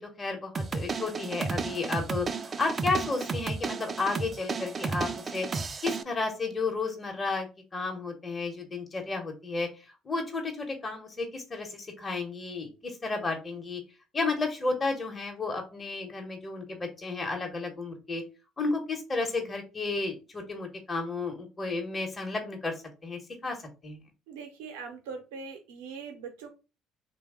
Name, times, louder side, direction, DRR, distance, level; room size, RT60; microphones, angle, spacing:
voice 1, 0.2-2.3 2.6-5.5 5.8-9.7 10.0-13.8 14.1-18.2 18.6-22.7 23.0-23.6 23.8-24.0, left 3 dB, 30° left, 2 dB, 1.0 m, -32 dB
sound 1, 0.5-6.0, right 4 dB, 40° right, 0.3 m, -33 dB
voice 2, 24.3-26.5, right 5 dB, 85° right, 4 dB, 0.6 m, -41 dB
3.2 x 2.2 x 3.5 m, 0.30 s
hypercardioid pair, 65°, 0 cm